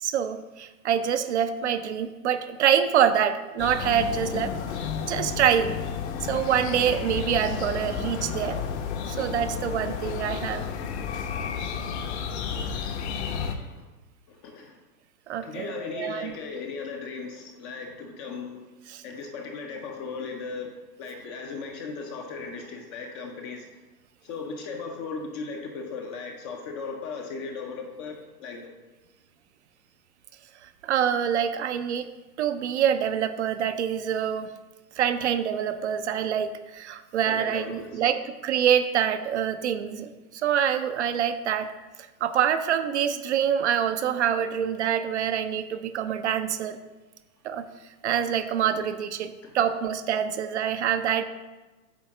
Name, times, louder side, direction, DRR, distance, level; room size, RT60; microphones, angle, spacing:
voice 1, 0.0-4.5 5.1-5.8 6.3-8.6 9.1-10.7 15.3-16.3 18.9-19.0 30.6-32.1 32.4-34.5 35.0-41.7 42.2-46.8 47.4-47.6 48.0-51.2, right 9 dB, 50° right, 10 dB, 0.5 m, -26 dB
sound 1, 3.6-13.6, left 7 dB, 45° left, 0.8 m, -32 dB
voice 2, 14.3-14.8 15.4-18.6 19.0-20.7 21.0-23.7 24.2-28.7 37.3-38.0 49.4-49.5, left 4 dB, 20° left, 3 dB, 0.4 m, -37 dB
8.7 x 3.4 x 6.0 m, 1.2 s
hypercardioid pair, 120°, 48 cm